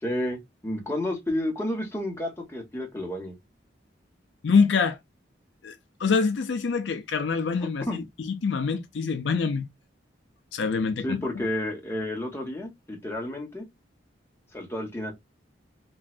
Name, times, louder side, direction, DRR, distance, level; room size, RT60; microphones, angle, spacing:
voice 1, 0.0-3.3 7.9-8.0 11.0-13.7 14.5-15.1, left 1 dB, 15° left, 1.2 m, -31 dB
voice 2, 4.4-5.0 5.6-5.7 6.0-9.7 10.5-11.4, left 5 dB, 75° left, 0.5 m, -25 dB
3.1 x 2.5 x 2.3 m
head